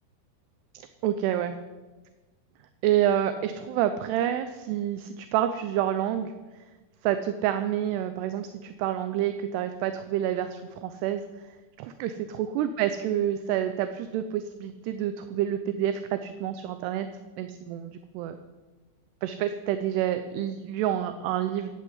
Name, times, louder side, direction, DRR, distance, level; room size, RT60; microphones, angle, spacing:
voice 1, 0.7-1.6 2.8-6.3 7.0-11.2 11.8-17.1 17.4-18.3 19.2-21.7, right 11 dB, 80° right, 9 dB, 2.6 m, -28 dB
14.0 x 8.5 x 9.4 m, 1.2 s
omnidirectional pair, 5.3 m